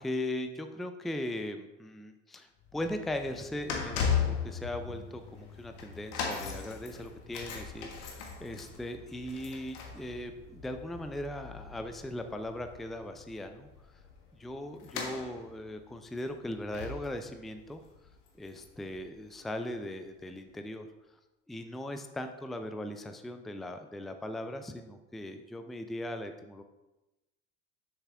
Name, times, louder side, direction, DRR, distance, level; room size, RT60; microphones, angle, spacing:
voice 1, 0.0-13.7 14.4-17.8 18.4-20.9 21.5-26.6, left 1 dB, ahead, 7 dB, 0.4 m, -39 dB
sound 1, 2.6-19.0 19.2-19.5 20.3-20.4, left 6 dB, 60° left, 1.4 m, -38 dB
7.1 x 6.6 x 3.5 m, 1.0 s
figure-of-eight pair, 60°, 37 cm